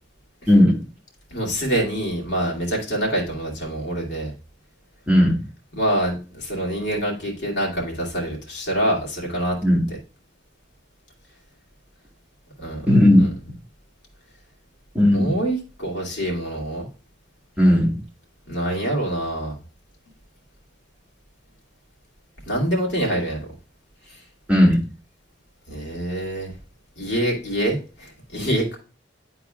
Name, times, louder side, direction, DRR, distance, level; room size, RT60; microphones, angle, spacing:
voice 1, 0.5-0.8 5.1-5.4 9.6-9.8 12.9-13.2 14.9-15.3 17.6-17.9 24.5-24.8, left 1 dB, 10° right, -3 dB, 1.7 m, -15 dB
voice 2, 1.3-4.3 5.8-9.6 12.6-12.9 13.2-13.3 15.1-16.9 18.5-19.6 22.5-23.5 24.1-24.2 25.7-26.5 27.0-28.8, right 1 dB, 75° left, -2 dB, 2.3 m, -25 dB
11.0 x 3.9 x 2.4 m, 0.34 s
head